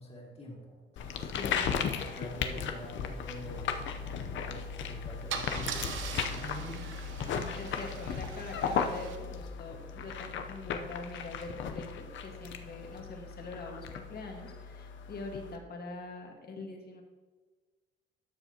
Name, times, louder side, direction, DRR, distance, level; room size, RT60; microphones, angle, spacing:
voice 1, 0.0-1.4 2.1-3.7 4.3-7.0 7.2-7.5, equal, 30° left, -3 dB, 2.3 m, -45 dB
sound 1, 1.0-15.6, left 6 dB, 70° left, 0.7 m, -36 dB
voice 2, 1.2-1.8 7.6-17.0, left 2 dB, 50° left, 2 dB, 1.6 m, -43 dB
Car / Engine starting / Idling, 4.6-4.8 5.3-9.2, right 6 dB, 75° right, 0.9 m, -41 dB
12.5 x 6.6 x 2.8 m, 1.4 s
cardioid pair, 90°, 20 cm